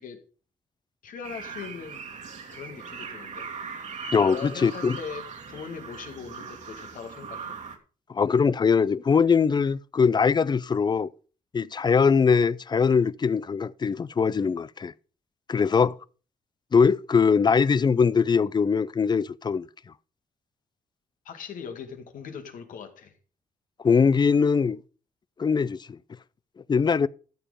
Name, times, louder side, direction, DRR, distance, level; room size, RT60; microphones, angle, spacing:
voice 1, 1.0-2.0 2.5-3.5 4.2-7.6 15.5-15.8 21.3-23.1, left 6 dB, 80° left, 2.1 m, -40 dB
sound 1, 1.2-7.8, right 5 dB, 60° right, 2.2 m, -39 dB
voice 2, 4.1-5.0 8.1-11.1 11.5-14.9 15.5-15.9 16.7-19.7 23.8-24.8 25.4-26.0 26.7-27.1, left 5 dB, 35° left, 0.4 m, -22 dB
13.5 x 6.8 x 5.0 m
cardioid pair, 95°, 14 cm